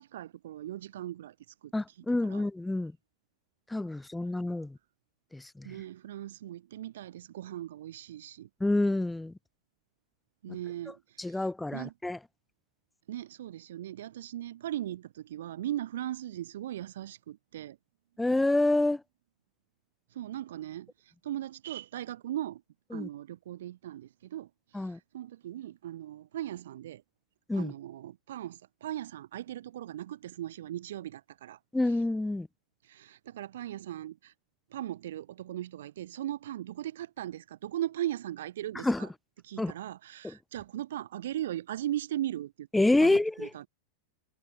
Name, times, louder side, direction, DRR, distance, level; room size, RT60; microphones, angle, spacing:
voice 1, 0.0-1.4 1.6-2.0 2.2-2.5 5.6-8.5 10.4-11.9 13.1-17.8 20.1-22.6 22.9-27.0 27.5-31.6 31.8-32.0 32.8-34.3 34.7-39.1 39.4-43.7, right 12 dB, 60° right, 2.0 m, -38 dB
voice 2, 1.7-2.9 3.7-4.8 5.3-5.7 8.6-9.3 11.2-12.2 18.2-19.0 22.9-23.1 24.7-25.0 27.5-27.7 31.7-32.5 38.8-39.1 39.6-39.7 42.7-43.5, left 2 dB, 5° left, 0.5 m, -27 dB
figure-of-eight pair, 90°, 0 cm